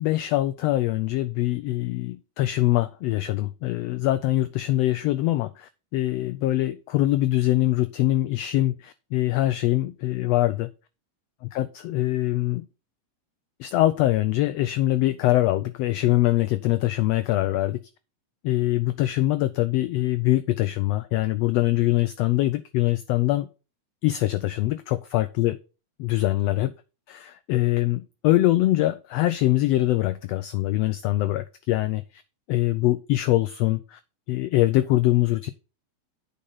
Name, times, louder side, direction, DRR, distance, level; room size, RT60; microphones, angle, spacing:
voice 1, 0.0-10.7 11.5-12.7 13.6-17.8 18.4-23.5 24.0-25.6 26.0-26.7 27.1-32.0 32.5-34.0 34.3-35.5, left 16 dB, 90° left, 13 dB, 1.4 m, -23 dB
8.6 x 5.5 x 5.5 m, 0.32 s
omnidirectional pair, 3.4 m